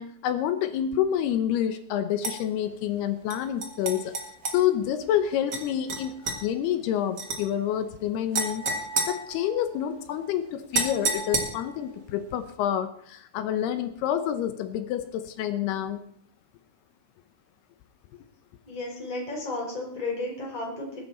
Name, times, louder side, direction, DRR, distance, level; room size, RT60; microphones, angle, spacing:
voice 1, 0.0-4.2 4.5-8.7 9.1-16.0, left 10 dB, 75° left, 10 dB, 2.5 m, -28 dB
sound 1, 2.2-2.4 3.3-4.6 5.5-5.6 5.9-6.4 7.2-7.4 8.3-9.8 10.7-11.8, right 3 dB, 50° right, 1.2 m, -30 dB
voice 2, 18.7-21.0, left 2 dB, 10° left, -3 dB, 4.4 m, -33 dB
21.5 x 9.0 x 4.3 m, 0.63 s
omnidirectional pair, 5.4 m